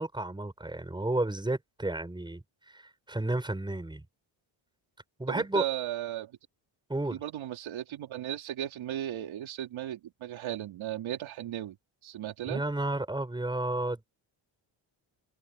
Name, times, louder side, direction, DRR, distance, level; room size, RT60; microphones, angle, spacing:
voice 1, 0.0-2.4 2.7-4.0 5.2-5.6 6.9-7.2 12.5-14.1, right 2 dB, 10° right, 6.3 m, -32 dB
voice 2, 5.3-6.3 7.1-11.8 12.0-12.6, right 12 dB, 85° right, 4.0 m, -36 dB
cardioid pair, 145°, 46 cm